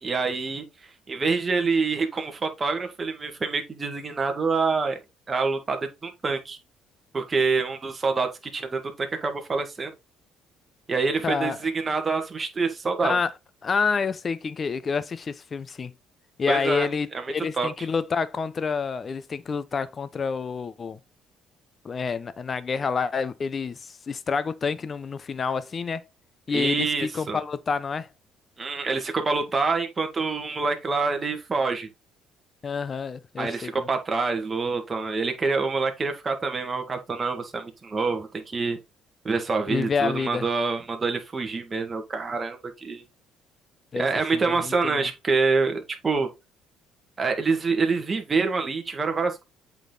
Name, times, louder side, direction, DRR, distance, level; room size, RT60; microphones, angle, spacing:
voice 1, 0.0-5.0 5.3-6.6 7.1-9.9 10.9-13.2 16.5-16.9 17.1-17.2 17.6-17.7 26.5-27.4 28.6-31.9 33.4-38.8 39.2-43.0 43.9-46.3 47.2-49.4, right 4 dB, 25° right, 1.8 m, -26 dB
voice 2, 11.2-11.6 13.0-13.3 13.6-15.9 16.4-21.0 21.8-26.0 26.5-28.1 32.6-33.7 39.7-40.5 43.9-44.1 44.3-45.1, left 5 dB, 35° left, 0.8 m, -28 dB
8.2 x 4.0 x 4.0 m
cardioid pair, 105°, 0 cm